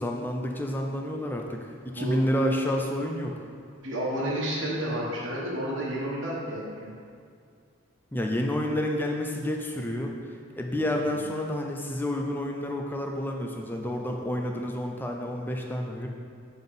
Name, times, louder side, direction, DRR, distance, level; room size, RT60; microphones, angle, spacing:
voice 1, 0.0-1.6 1.8-3.3 8.1-10.1 10.5-16.1, left 1 dB, 10° left, 1 dB, 0.5 m, -29 dB
voice 2, 3.8-6.9, right 1 dB, 60° right, -5 dB, 1.3 m, -31 dB
7.0 x 4.0 x 5.4 m, 2.3 s
head